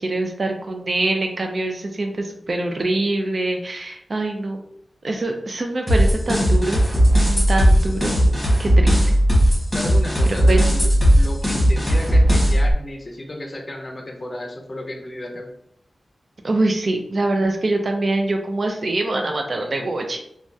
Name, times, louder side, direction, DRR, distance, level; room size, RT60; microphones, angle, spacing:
voice 1, 0.0-4.6 5.0-6.8 7.3-8.2 8.6-9.0 10.2-10.6 16.4-20.2, right 2 dB, 45° right, 3 dB, 0.4 m, -24 dB
sound 1, 5.9-12.7, equal, 5° left, 1.3 m, -17 dB
voice 2, 9.7-10.9 11.2-15.5, left 1 dB, 35° left, 2 dB, 0.5 m, -33 dB
3.2 x 2.3 x 2.6 m, 0.73 s
wide cardioid pair, 125°, 0 cm